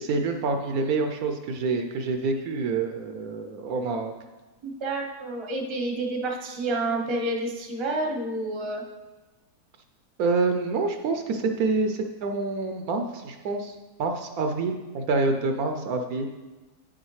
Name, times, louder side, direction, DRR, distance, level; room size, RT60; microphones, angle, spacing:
voice 1, 0.0-4.1 10.2-16.3, right 3 dB, 70° right, 5 dB, 1.0 m, -27 dB
voice 2, 4.6-8.8, right 2 dB, 25° right, 0 dB, 0.6 m, -29 dB
9.3 x 6.3 x 3.1 m, 1.2 s
omnidirectional pair, 1.7 m